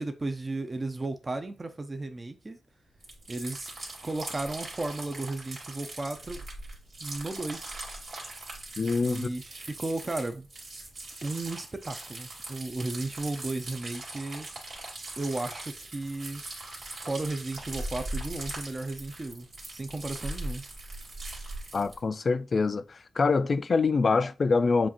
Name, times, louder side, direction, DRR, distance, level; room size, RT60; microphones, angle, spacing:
voice 1, 0.0-2.6 3.3-3.7 4.0-6.5 7.0-7.8 9.0-10.5 11.2-14.5 15.2-16.4 16.9-20.6, right 2 dB, 30° right, 0.6 m, -34 dB
sound 1, 3.0-22.0, right 2 dB, 65° right, 2.1 m, -40 dB
voice 2, 8.8-9.3 21.7-22.8 23.2-24.9, left 4 dB, 50° left, 0.3 m, -25 dB
7.2 x 2.5 x 2.9 m
cardioid pair, 80°, 0 cm